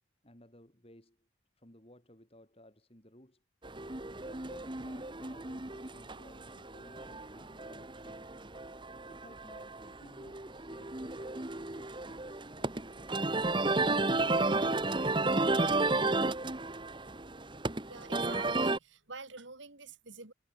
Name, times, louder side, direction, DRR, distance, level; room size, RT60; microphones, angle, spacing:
voice 1, 0.2-1.3 1.6-3.4 4.3-8.4 9.1-13.2, left 1 dB, 30° left, 3.6 m, -58 dB
sound 1, 3.6-18.8, right 2 dB, 25° right, 1.3 m, -33 dB
voice 2, 17.9-20.3, right 4 dB, 65° right, 3.5 m, -47 dB
head